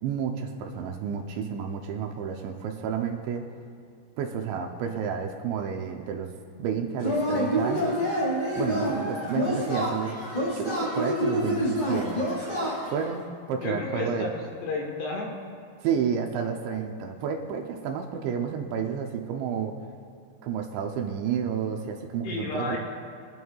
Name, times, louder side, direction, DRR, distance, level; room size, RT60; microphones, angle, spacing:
voice 1, 0.0-3.5 4.2-6.3 6.6-8.0 8.5-12.3 12.9-14.3 15.8-19.7 20.4-22.8, right 7 dB, 80° right, 2 dB, 2.7 m, -31 dB
Yell / Cheering, 7.0-13.1, equal, 45° left, 0.6 m, -27 dB
voice 2, 13.6-15.3 22.2-22.8, left 3 dB, 70° left, -1 dB, 3.0 m, -32 dB
23.5 x 11.0 x 2.3 m, 2.2 s
omnidirectional pair, 5.7 m